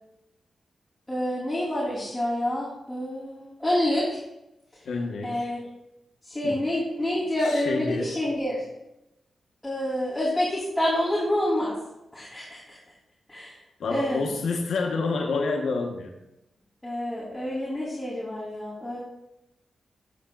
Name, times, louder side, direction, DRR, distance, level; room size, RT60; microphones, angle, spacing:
voice 1, 1.1-4.2 5.2-5.6 6.2-8.6 9.6-11.7 12.1-12.8 13.3-13.6 13.9-14.2 16.8-19.0, left 1 dB, 5° left, -9 dB, 3.0 m, -27 dB
voice 2, 4.8-5.5 6.4-6.6 7.4-8.2 13.8-16.1, left 3 dB, 85° left, 1 dB, 1.0 m, -28 dB
11.5 x 6.9 x 2.4 m, 0.87 s
cardioid pair, 95°, 0 cm